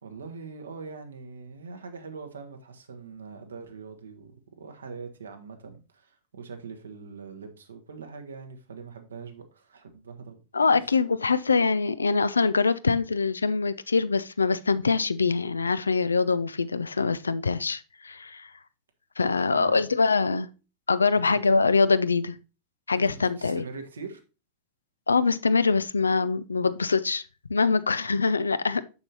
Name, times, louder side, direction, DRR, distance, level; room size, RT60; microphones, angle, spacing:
voice 1, 0.0-10.4 19.4-19.8 21.2-21.4 23.2-24.2, right 5 dB, 70° right, 1.2 m, -42 dB
voice 2, 10.5-18.5 19.2-20.5 20.9-22.4 22.9-23.6 25.1-27.2 27.5-28.8, left 4 dB, 75° left, 0.4 m, -24 dB
6.9 x 6.7 x 2.8 m
figure-of-eight pair, 90°, 0 cm